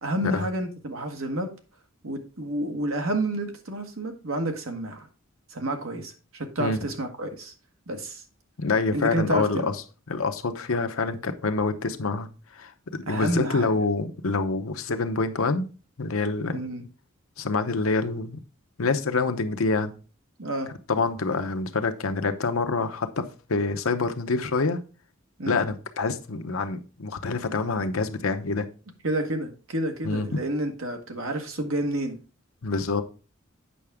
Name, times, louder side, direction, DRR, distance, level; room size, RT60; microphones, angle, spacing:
voice 1, 0.0-1.5 2.0-5.1 5.5-7.5 7.9-8.2 8.9-9.7 13.1-13.8 16.5-16.9 20.4-20.7 25.4-25.6 29.0-32.2, right 1 dB, 75° right, 1.4 m, -30 dB
voice 2, 8.6-9.7 10.1-12.3 12.5-15.7 16.0-16.6 17.4-18.4 18.8-19.9 20.9-23.2 23.5-24.8 25.5-28.7 30.0-30.4 32.6-33.0, left 3 dB, 80° left, 0.8 m, -26 dB
8.3 x 5.8 x 3.6 m
head